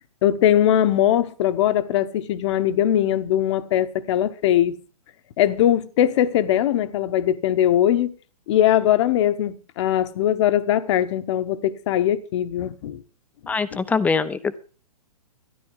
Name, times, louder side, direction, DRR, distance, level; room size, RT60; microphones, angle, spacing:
voice 1, 0.2-4.8 5.4-8.1 8.5-13.0 13.7-13.8, left 11 dB, 45° left, 1.1 m, -20 dB
voice 2, 13.5-14.6, left 4 dB, 5° left, 0.7 m, -23 dB
13.0 x 11.0 x 5.5 m
hypercardioid pair, 125°, 20 cm